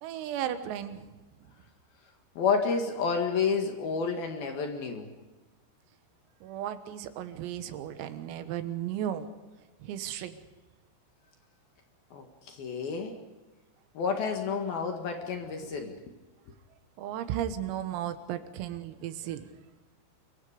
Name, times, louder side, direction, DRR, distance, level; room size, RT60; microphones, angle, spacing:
voice 1, 0.0-1.1 6.4-9.3 9.8-10.4 17.0-19.4, right 10 dB, 85° right, 10 dB, 4.0 m, -35 dB
voice 2, 2.4-5.1 12.1-13.2 13.9-16.0, left 5 dB, 60° left, 4 dB, 3.1 m, -30 dB
26.5 x 23.0 x 5.1 m, 1.1 s
omnidirectional pair, 6.0 m